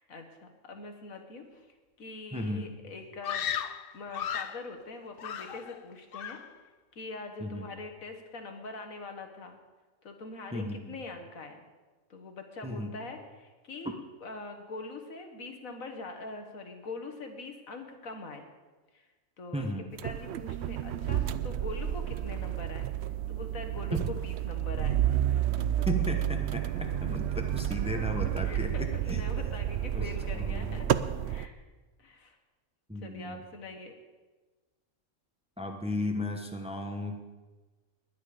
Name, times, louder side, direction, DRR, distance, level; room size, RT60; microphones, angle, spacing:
voice 1, 0.1-1.7 2.0-3.5 3.9-6.4 6.9-9.6 10.0-11.7 12.1-14.0 14.2-18.4 18.9-19.1 19.4-19.7 20.0-22.9 23.3-25.9 28.0-28.1 28.4-30.9 31.2-31.5 32.0-32.4 33.0-33.9, left 3 dB, 80° left, 5 dB, 2.0 m, -43 dB
voice 2, 2.3-2.7 7.4-7.7 10.5-10.9 12.6-12.9 19.5-19.9 23.9-24.1 25.9-29.2 29.9-30.1 30.4-31.3 32.9-33.4 35.6-37.2, left 1 dB, 5° right, 4 dB, 1.0 m, -35 dB
Screaming, 3.2-4.7 5.2-5.9 6.1-6.6, left 8 dB, 55° left, 0.7 m, -35 dB
sound 1, 20.0-31.5, right 11 dB, 65° right, 0.8 m, -30 dB
21.0 x 9.2 x 5.1 m, 1.3 s
omnidirectional pair, 1.4 m